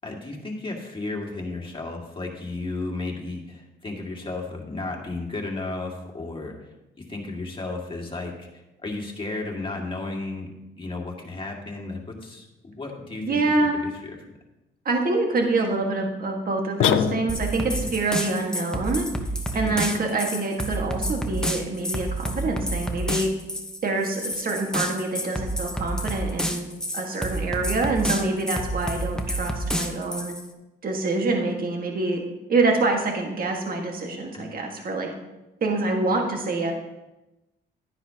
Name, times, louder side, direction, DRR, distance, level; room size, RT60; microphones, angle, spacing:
voice 1, 0.0-6.5 7.1-10.5 10.8-13.7 14.0-14.2 17.7-17.9 19.5-19.8 34.3-34.5, left 2 dB, 25° left, 0 dB, 2.1 m, -33 dB
voice 2, 13.3-13.7 14.8-19.1 19.5-23.3 23.8-26.7 26.9-30.3 30.8-32.2 32.5-35.1 35.6-36.7, right 3 dB, 45° right, 2 dB, 1.7 m, -26 dB
sound 1, 16.8-17.7, left 12 dB, 85° left, 0.5 m, -23 dB
sound 2, 17.3-30.4, equal, 5° left, 1.1 m, -29 dB
11.5 x 9.8 x 2.9 m, 1.0 s
cardioid pair, 90°, 20 cm